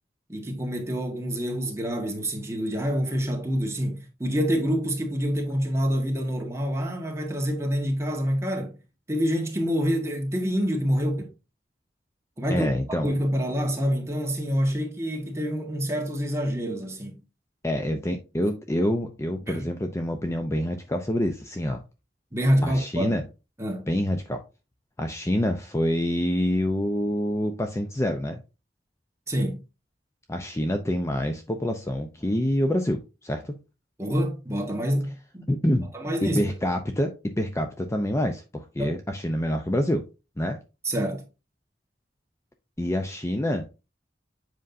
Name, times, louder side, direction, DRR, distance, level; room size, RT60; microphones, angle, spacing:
voice 1, 0.3-8.8 9.1-11.3 12.4-17.2 19.5-19.7 22.3-23.1 23.6-23.9 29.3-29.6 34.0-35.4 35.9-36.4 38.8-38.9 40.8-41.2, equal, 15° right, 1.6 m, -27 dB
voice 2, 12.5-13.1 17.6-21.8 22.6-23.2 23.9-24.4 25.0-28.4 30.3-33.6 35.5-35.9 36.2-40.1 40.4-40.6 42.8-43.7, left 1 dB, 15° left, 0.5 m, -26 dB
7.7 x 5.4 x 2.6 m
head